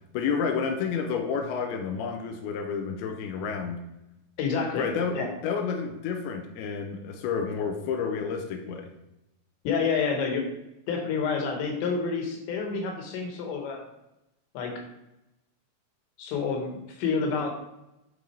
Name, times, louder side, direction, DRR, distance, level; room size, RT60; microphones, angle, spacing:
voice 1, 0.1-3.8 4.7-8.9, left 6 dB, 90° left, 4 dB, 2.2 m, -30 dB
voice 2, 4.4-4.9 5.1-5.3 9.6-10.4 10.9-13.8 14.5-14.7 16.2-17.5, left 5 dB, 75° left, 2 dB, 3.4 m, -28 dB
9.5 x 3.9 x 4.3 m, 0.90 s
omnidirectional pair, 5.3 m